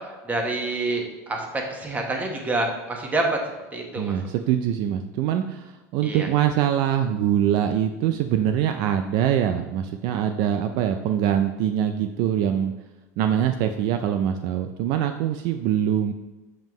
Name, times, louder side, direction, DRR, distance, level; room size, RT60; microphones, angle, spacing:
voice 1, 0.2-3.4 3.7-4.1 6.0-6.3, right 2 dB, 20° right, 2 dB, 1.3 m, -27 dB
voice 2, 4.0-12.7 13.2-16.1, right 10 dB, 60° right, 7 dB, 0.4 m, -23 dB
7.2 x 5.4 x 3.1 m, 1.1 s
supercardioid pair, 120°, 8 cm